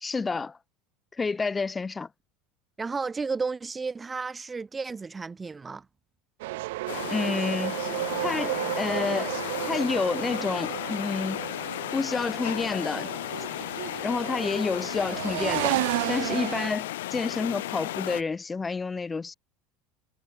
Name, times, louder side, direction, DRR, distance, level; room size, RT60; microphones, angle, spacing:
voice 1, 0.0-0.6 1.2-2.1 7.1-7.8 8.2-9.4 9.7-11.4 11.9-13.1 14.0-15.8 16.1-19.3, left 4 dB, 20° left, 2.1 m, -29 dB
voice 2, 2.8-5.8, right 4 dB, 20° right, 1.5 m, -32 dB
sound 1, 6.4-16.7, right 20 dB, 70° right, 0.9 m, -33 dB
sound 2, 6.9-18.2, left 15 dB, 75° left, 2.4 m, -34 dB
hypercardioid pair, 85°, 0 cm